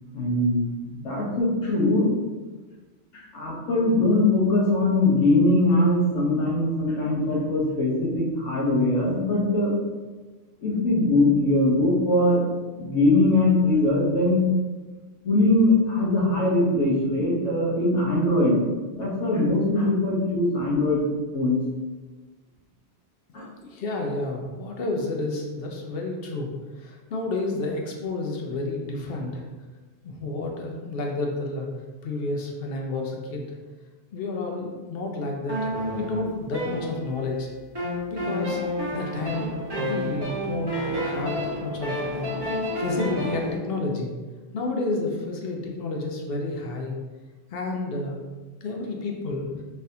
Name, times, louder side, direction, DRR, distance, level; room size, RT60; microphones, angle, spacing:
voice 1, 0.1-2.1 3.1-9.7 10.6-12.5 12.8-14.4 15.2-18.6 18.9-21.0 21.3-21.6 23.3-23.5, left 2 dB, 85° left, -4 dB, 1.2 m, -21 dB
voice 2, 23.6-26.5 26.8-29.4 30.0-31.7 32.0-33.6 34.1-37.5 38.1-38.6 38.9-42.3 42.8-44.1 44.5-47.0 47.5-48.2 48.6-49.6, left 2 dB, 60° left, 1 dB, 0.8 m, -30 dB
sound 1, 35.5-37.3 37.8-43.5, equal, 25° right, 0.9 m, -30 dB
4.0 x 2.6 x 2.6 m, 1.3 s
omnidirectional pair, 1.2 m